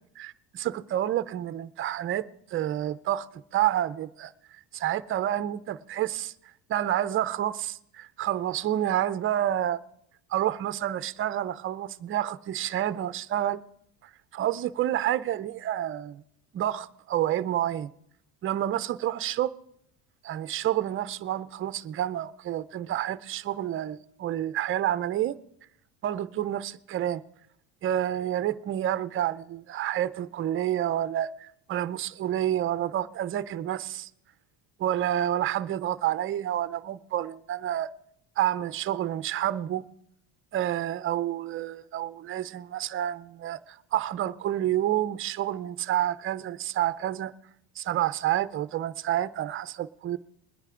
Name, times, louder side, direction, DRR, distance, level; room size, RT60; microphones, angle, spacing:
voice 1, 0.2-4.3 4.7-6.3 6.7-9.8 10.3-13.6 14.0-16.2 16.5-17.9 18.4-19.5 20.2-25.4 26.0-27.2 27.8-34.1 34.8-37.9 38.4-39.8 40.5-47.3 47.8-50.2, right 12 dB, 30° right, 0.5 m, -29 dB
21.5 x 10.0 x 3.7 m
cardioid pair, 135°, 45 cm